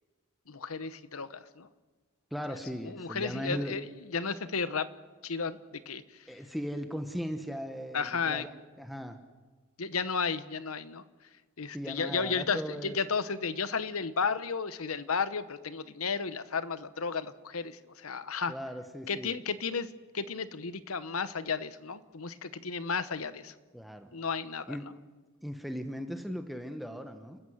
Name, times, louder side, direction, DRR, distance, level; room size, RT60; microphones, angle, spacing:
voice 1, 0.5-1.7 2.9-3.8 4.1-4.9 5.2-6.0 7.9-8.4 9.8-11.0 11.6-18.5 19.1-23.5 24.1-24.8, left 5 dB, 90° left, 14 dB, 1.1 m, -33 dB
voice 2, 2.3-3.8 6.3-9.2 11.7-12.9 18.5-19.3 23.7-24.1 24.7-24.9 25.4-27.4, equal, ahead, 7 dB, 1.1 m, -38 dB
29.5 x 14.5 x 8.0 m, 1.4 s
head